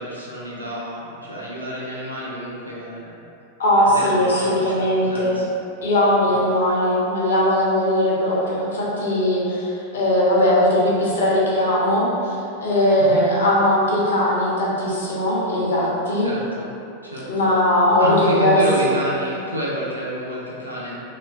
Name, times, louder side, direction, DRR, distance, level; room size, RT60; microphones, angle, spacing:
voice 1, 0.0-3.3 3.8-5.5 6.2-6.4 13.0-13.3 16.2-16.7 17.0-17.5 18.0-21.0, equal, 85° right, -6 dB, 0.6 m, -29 dB
voice 2, 3.6-5.4 5.8-12.3 12.6-16.3 17.3-18.9, left 1 dB, 70° left, -6 dB, 0.8 m, -19 dB
3.1 x 2.9 x 2.4 m, 2.6 s
figure-of-eight pair, 90°, 0 cm